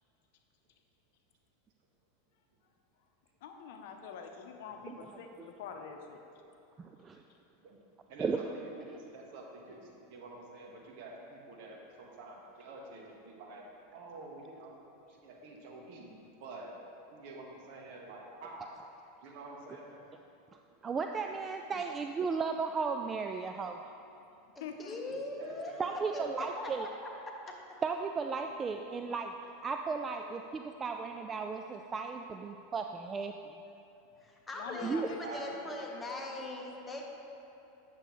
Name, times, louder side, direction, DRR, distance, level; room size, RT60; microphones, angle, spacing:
voice 1, 3.4-6.2 7.2-7.4 24.6-25.2 34.5-35.2 35.6-36.4, left 6 dB, 65° left, 4 dB, 0.7 m, -46 dB
voice 2, 6.8-7.2 8.2-8.4 20.5-23.8 25.8-26.9 27.8-29.3 29.6-33.6 34.8-35.1, right 5 dB, 25° right, 5 dB, 0.3 m, -35 dB
voice 3, 8.1-13.6 13.9-14.8 15.2-16.7 17.1-18.8 19.2-20.0 25.1-26.3 35.2-35.4, right 2 dB, 60° right, -1 dB, 1.3 m, -48 dB
voice 4, 24.5-25.8 26.1-26.9 34.2-37.1, left 2 dB, 15° left, -1 dB, 1.2 m, -40 dB
8.8 x 6.7 x 3.1 m, 2.9 s
hypercardioid pair, 100°, 0 cm